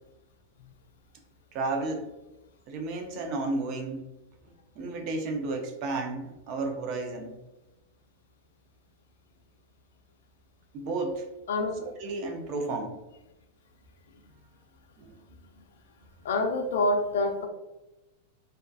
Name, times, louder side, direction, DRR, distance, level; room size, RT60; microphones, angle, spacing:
voice 1, 1.5-2.1 2.7-4.1 4.8-7.4 10.7-11.2 12.0-13.0 15.0-15.1, right 3 dB, 35° right, 3 dB, 0.4 m, -32 dB
voice 2, 11.5-11.9 15.5-15.6 16.2-17.5, left 2 dB, 85° left, 5 dB, 0.4 m, -27 dB
2.5 x 2.3 x 2.3 m, 1.0 s
supercardioid pair, 165°, 0 cm